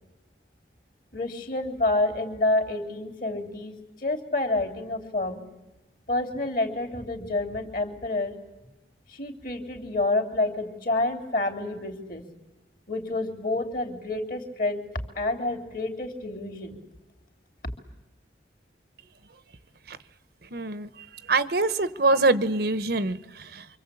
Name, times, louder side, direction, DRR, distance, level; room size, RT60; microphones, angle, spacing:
voice 1, 1.1-5.4 6.1-8.3 9.1-12.2 12.9-14.8 15.2-16.8, left 2 dB, 50° left, 7 dB, 3.4 m, -28 dB
voice 2, 20.4-23.7, right 3 dB, 60° right, 14 dB, 1.0 m, -25 dB
28.5 x 24.5 x 8.5 m, 1.0 s
head